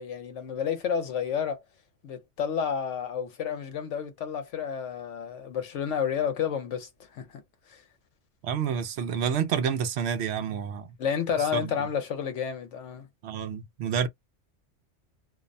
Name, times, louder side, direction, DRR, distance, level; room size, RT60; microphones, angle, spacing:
voice 1, 0.0-1.6 2.0-7.4 7.7-7.8 11.0-13.1, left 7 dB, 75° left, 1.1 m, -30 dB
voice 2, 8.4-10.9 11.5-11.7 13.2-14.1, right 7 dB, 70° right, 0.8 m, -29 dB
2.6 x 2.1 x 2.5 m
omnidirectional pair, 1.2 m